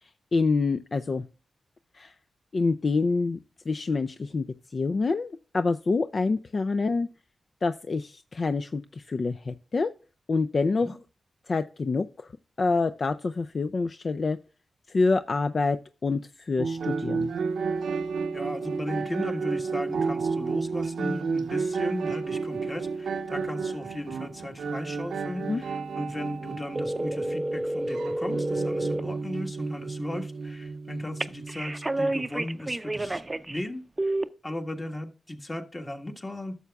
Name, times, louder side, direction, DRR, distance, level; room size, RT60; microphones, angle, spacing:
voice 1, 0.3-1.2 1.9-2.1 2.5-3.4 3.7-4.5 4.7-7.1 7.6-9.9 10.3-10.9 11.5-12.3 12.6-14.4 14.9-15.8 16.0-17.3 25.4-25.6, left 3 dB, 55° left, 10 dB, 0.4 m, -26 dB
sound 1, 16.6-32.1, right 4 dB, 85° right, 0.6 m, -32 dB
voice 2, 18.3-34.1 34.4-36.5, left 1 dB, 30° left, 4 dB, 1.5 m, -36 dB
sound 2, 26.7-29.0 31.2-33.6 34.0-34.2, right 1 dB, 30° right, 0.5 m, -29 dB
12.0 x 6.9 x 2.3 m, 0.35 s
cardioid pair, 50°, 0 cm